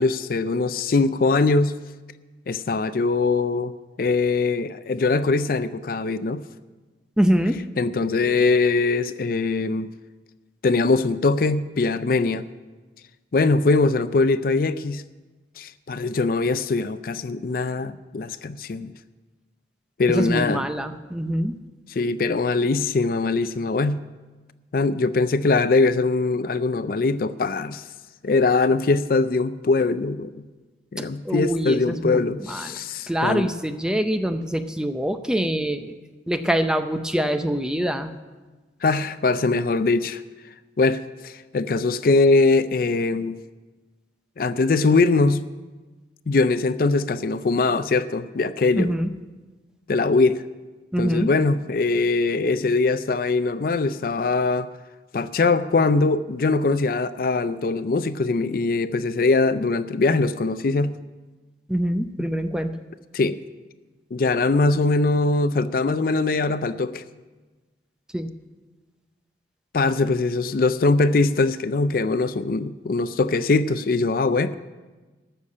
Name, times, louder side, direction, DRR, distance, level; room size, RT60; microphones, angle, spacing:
voice 1, 0.0-1.7 2.5-3.7 4.0-6.4 7.8-9.9 10.6-12.5 13.3-15.0 15.6-18.9 20.0-20.6 21.9-24.0 24.7-27.8 28.2-30.4 30.9-33.5 38.8-40.2 40.8-43.4 44.4-45.4 46.3-48.9 49.9-50.4 51.0-54.7 55.1-60.9 63.1-63.4 64.1-67.0 69.7-74.6, left 3 dB, 50° left, 0.4 m, -22 dB
voice 2, 7.2-7.6 20.1-21.5 31.0-32.8 33.1-35.9 36.3-38.1 48.8-49.1 50.9-51.3 61.7-62.7 68.1-68.3, equal, 5° right, 0.5 m, -24 dB
14.0 x 6.6 x 8.5 m
head